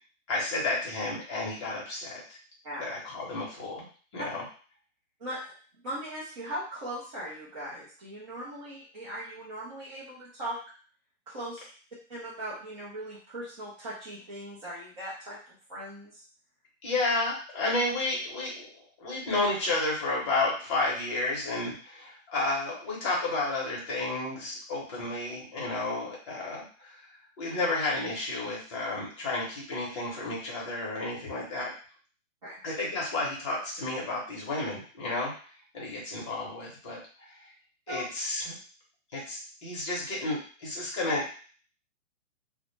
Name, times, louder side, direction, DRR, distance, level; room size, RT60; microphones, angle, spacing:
voice 1, 0.3-2.4 2.8-3.8 4.1-4.4 16.8-18.7 19.0-27.0 27.4-31.7 32.6-35.3 35.7-37.3 37.9-38.5 39.1-41.4, left 2 dB, 25° left, -4 dB, 0.7 m, -31 dB
voice 2, 5.2-5.5 5.8-10.6 11.3-11.7 12.1-16.2 32.4-32.6 37.9-38.0, right 1 dB, 25° right, -9 dB, 0.5 m, -39 dB
2.0 x 2.0 x 3.1 m, 0.41 s
hypercardioid pair, 155°, 39 cm